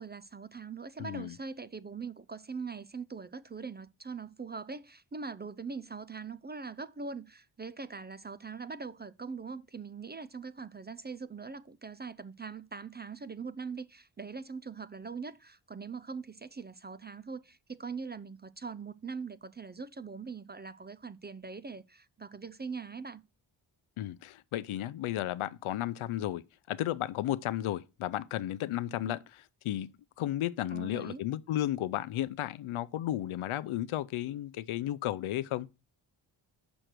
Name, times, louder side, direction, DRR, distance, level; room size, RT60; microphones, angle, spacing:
voice 1, 0.0-23.2 29.0-29.1 30.7-31.2, right 5 dB, 25° right, 0.3 m, -42 dB
voice 2, 1.0-1.3 24.0-29.9 30.2-35.7, left 13 dB, 85° left, 0.6 m, -34 dB
6.4 x 6.3 x 4.5 m
cardioid pair, 70°, 48 cm